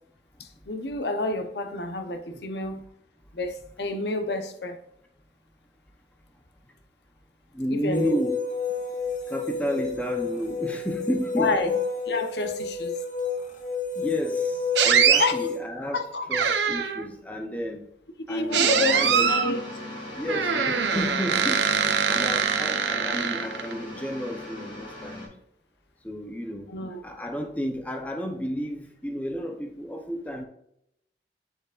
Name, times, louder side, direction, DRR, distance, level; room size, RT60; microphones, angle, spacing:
voice 1, 0.4-2.8 3.3-4.8 7.7-8.2 11.4-11.7 12.1-13.0 15.2-15.5 15.9-16.2 18.3-19.6 26.7-27.0, left 2 dB, 75° left, 7 dB, 0.9 m, -29 dB
voice 2, 7.5-8.4 9.3-11.8 14.0-16.0 16.3-17.8 18.3-19.3 20.1-21.7 22.1-25.3 26.0-26.7 27.0-30.4, equal, 10° left, 3 dB, 0.7 m, -31 dB
sound 1, 7.9-15.6, left 4 dB, 45° left, 1.3 m, -30 dB
sound 2, 14.8-15.3 16.3-17.1 18.5-19.5 20.3-23.7, right 7 dB, 85° right, 0.7 m, -23 dB
sound 3, 18.5-25.3, left 1 dB, 25° left, 2.6 m, -38 dB
7.8 x 6.6 x 2.5 m, 0.77 s
head